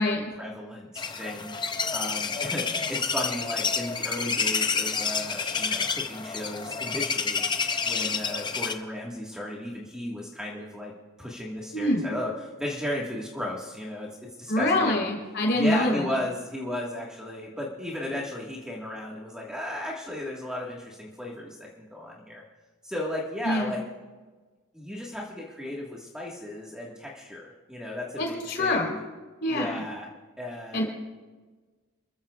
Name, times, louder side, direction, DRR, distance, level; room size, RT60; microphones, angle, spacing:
voice 1, 0.0-1.6 1.9-7.4 7.8-10.9 11.2-14.1 14.4-15.1 15.5-22.4 22.8-23.8 24.7-29.0 29.5-30.1 30.4-30.9, left 1 dB, 5° right, -3 dB, 1.6 m, -35 dB
sound 1, 1.0-8.7, left 5 dB, 20° left, 0.6 m, -29 dB
voice 2, 14.5-16.1 23.4-23.7 28.2-28.9 29.4-29.8 30.7-30.9, left 1 dB, 50° left, 1 dB, 3.8 m, -25 dB
28.0 x 14.5 x 2.4 m, 1.3 s
head